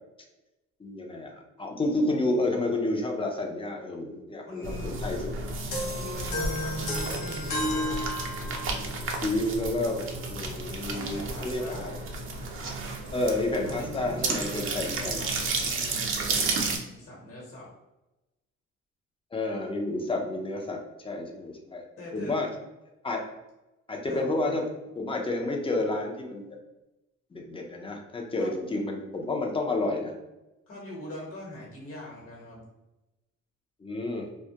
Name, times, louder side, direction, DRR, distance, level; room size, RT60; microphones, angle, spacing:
voice 1, 0.8-5.4 9.2-11.9 13.1-15.2 19.3-21.8 22.1-22.5 23.0-23.2 23.9-24.6 24.9-26.5 27.3-30.1 33.8-34.3, left 2 dB, 20° left, 1 dB, 0.5 m, -30 dB
voice 2, 4.5-5.0 5.9-8.1 10.7-11.9 13.6-16.0 16.8-17.7 22.0-22.4 24.1-24.2 28.4-28.6 30.7-32.6, left 1 dB, 45° left, -4 dB, 1.1 m, -42 dB
sound 1, 4.6-16.8, right 3 dB, 45° right, 0.5 m, -32 dB
sound 2, 5.7-8.9, left 1 dB, 90° left, 0.8 m, -32 dB
2.2 x 2.1 x 2.8 m, 0.98 s
cardioid pair, 90°, 30 cm